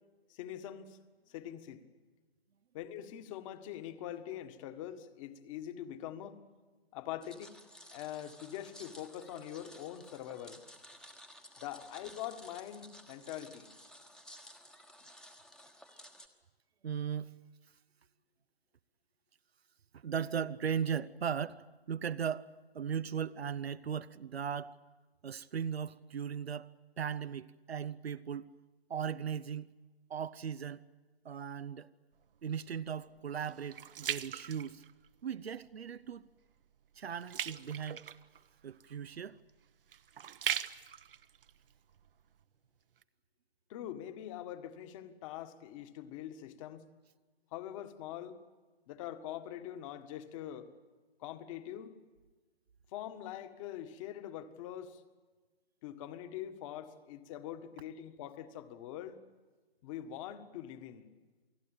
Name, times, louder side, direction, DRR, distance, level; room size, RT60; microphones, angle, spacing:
voice 1, 0.3-1.0 1.3-1.8 2.7-6.4 6.9-7.5 7.9-10.6 11.6-13.7 43.7-46.9 47.5-48.4 48.9-50.7 51.2-52.0 52.9-55.0 55.8-59.2 59.8-61.1, left 11 dB, 30° left, 1.8 m, -43 dB
sound 1, 7.2-16.3, equal, ahead, 1.3 m, -55 dB
voice 2, 16.8-17.4 19.9-24.7 25.2-28.5 28.9-29.7 30.1-30.8 31.2-31.9 32.4-34.8 35.2-36.3 37.0-38.1 38.6-39.4, right 7 dB, 75° right, 0.8 m, -38 dB
sound 2, 32.1-35.4 35.9-36.2 36.5-42.4 43.0-43.1, right 9 dB, 60° right, 1.1 m, -41 dB
29.0 x 19.5 x 9.1 m
hypercardioid pair, 135°, 31 cm